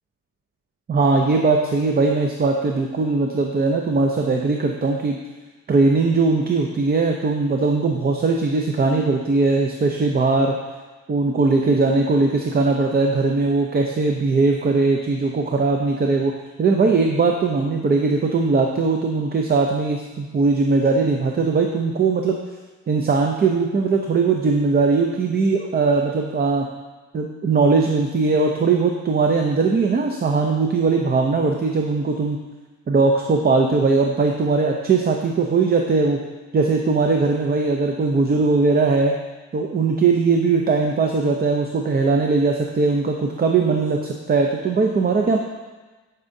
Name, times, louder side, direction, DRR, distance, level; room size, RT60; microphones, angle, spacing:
voice 1, 0.9-5.2 5.7-10.5 11.1-16.3 16.6-22.4 22.9-26.7 27.1-32.4 32.9-36.2 36.5-39.1 39.5-45.4, right 4 dB, 30° right, 2 dB, 0.5 m, -20 dB
10.5 x 5.5 x 2.6 m, 1.3 s
cardioid pair, 125°, 31 cm